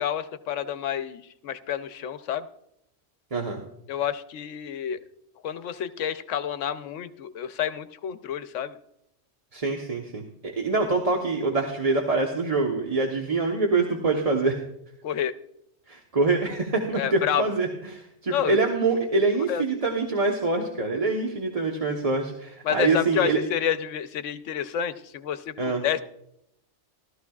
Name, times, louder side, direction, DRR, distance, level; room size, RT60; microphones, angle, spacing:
voice 1, 0.0-2.5 3.9-5.0 5.4-8.8 15.0-15.3 17.0-17.4 18.3-18.6 19.5-19.6 22.6-26.0, left 9 dB, 85° left, 12 dB, 1.0 m, -29 dB
voice 2, 3.3-3.6 9.5-14.6 15.9-23.4 25.6-25.8, right 3 dB, 30° right, 1 dB, 1.1 m, -25 dB
16.0 x 13.0 x 2.4 m, 0.77 s
omnidirectional pair, 1.2 m